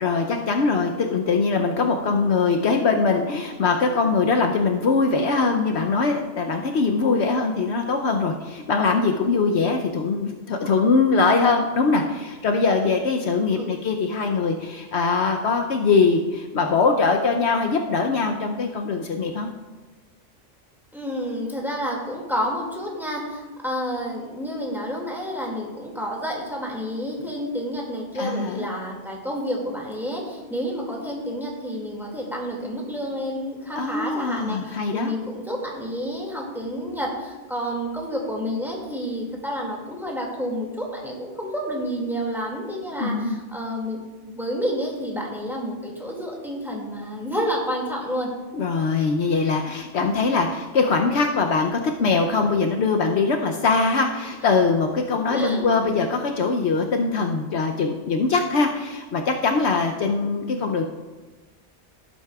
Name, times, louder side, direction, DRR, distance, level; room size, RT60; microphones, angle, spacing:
voice 1, 0.0-19.5 28.1-28.7 33.7-35.1 42.9-43.4 48.5-60.8, left 4 dB, 65° left, 3 dB, 0.9 m, -22 dB
voice 2, 20.9-44.0 44.3-48.3 55.3-55.7, equal, ahead, -2 dB, 2.1 m, -29 dB
16.0 x 8.3 x 2.3 m, 1.3 s
omnidirectional pair, 1.2 m